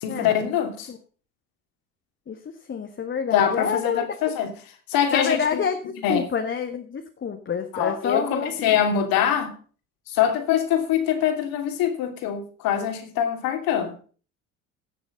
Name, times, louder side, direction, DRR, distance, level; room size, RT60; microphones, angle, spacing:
voice 1, 0.0-0.9 3.3-4.5 4.9-5.6 6.0-6.3 7.7-9.5 10.1-13.9, left 9 dB, 55° left, 6 dB, 2.9 m, -24 dB
voice 2, 2.7-4.1 5.1-8.7, left 6 dB, 30° left, 5 dB, 1.6 m, -28 dB
16.5 x 7.0 x 5.2 m, 0.40 s
hypercardioid pair, 70°, 40 cm